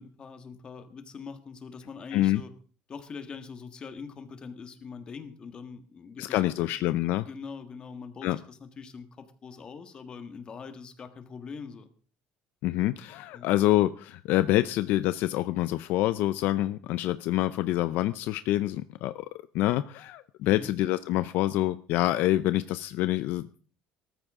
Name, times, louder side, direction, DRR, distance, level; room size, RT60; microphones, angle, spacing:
voice 1, 0.0-2.5 2.9-6.7 7.2-11.9 13.3-13.5 20.4-20.7, left 5 dB, 25° left, 9 dB, 1.6 m, -43 dB
voice 2, 6.2-7.3 8.2-8.4 12.6-19.3 19.5-23.5, left 15 dB, 55° left, 14 dB, 0.5 m, -26 dB
18.0 x 14.0 x 3.7 m, 0.41 s
cardioid pair, 175°, 4 cm